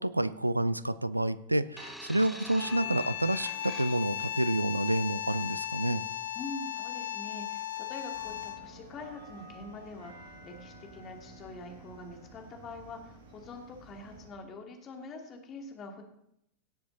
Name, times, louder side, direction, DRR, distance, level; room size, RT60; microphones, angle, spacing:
voice 1, 0.0-6.0, right 1 dB, 85° right, 16 dB, 0.5 m, -29 dB
sound 1, 1.8-4.3 5.2-5.4, equal, ahead, 0.8 m, -47 dB
sound 2, 2.6-8.8, left 12 dB, 65° left, 0.6 m, -36 dB
voice 2, 6.3-16.0, left 3 dB, 30° left, 2 dB, 2.5 m, -44 dB
sound 3, 8.1-14.3, right 2 dB, 60° right, 4.2 m, -52 dB
17.5 x 7.7 x 4.0 m, 0.76 s
figure-of-eight pair, 90°, 0 cm